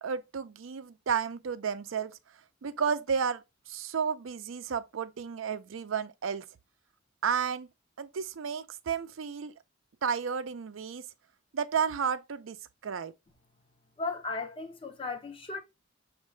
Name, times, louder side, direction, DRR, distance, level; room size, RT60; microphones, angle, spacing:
voice 1, 0.0-2.2 2.6-6.5 7.2-7.7 8.0-9.5 10.0-11.1 11.5-12.6 12.8-13.1, right 6 dB, 85° right, 0.5 m, -32 dB
voice 2, 14.0-15.6, left 3 dB, 25° left, 0.6 m, -36 dB
6.4 x 2.5 x 3.1 m
head